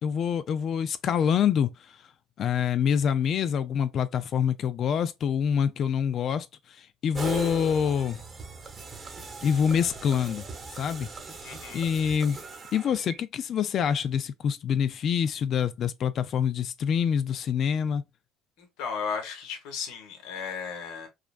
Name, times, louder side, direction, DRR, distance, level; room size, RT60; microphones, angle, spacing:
voice 1, 0.0-1.7 2.4-6.5 6.8-8.2 9.4-10.4 10.7-11.1 11.7-12.4 12.7-18.0, left 8 dB, 50° left, 0.4 m, -26 dB
sound 1, 7.1-13.2, right 4 dB, 30° right, 1.0 m, -39 dB
voice 2, 11.4-11.8 18.6-21.1, left 6 dB, 75° left, 1.2 m, -35 dB
4.8 x 2.2 x 2.4 m
supercardioid pair, 100°, 0 cm